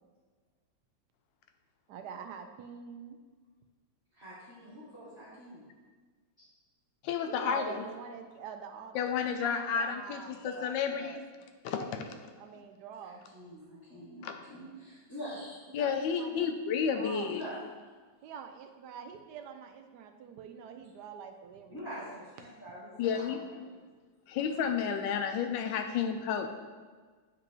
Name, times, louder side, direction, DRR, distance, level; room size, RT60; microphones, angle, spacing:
voice 1, 1.9-3.2 4.8-4.9 5.3-5.4 7.2-11.2 11.8-13.2 15.7-16.5 16.9-17.3 18.2-21.8 22.1-22.2, right 7 dB, 75° right, 5 dB, 1.1 m, -45 dB
voice 2, 4.1-5.7 13.0-15.6 17.3-17.6 21.7-23.8, equal, 10° left, -14 dB, 1.9 m, -45 dB
voice 3, 7.0-7.8 8.9-11.2 11.6-12.0 14.2-14.4 15.7-17.4 23.0-23.4 24.3-26.5, left 7 dB, 85° left, 6 dB, 1.3 m, -31 dB
9.7 x 5.1 x 3.1 m, 1.5 s
omnidirectional pair, 2.0 m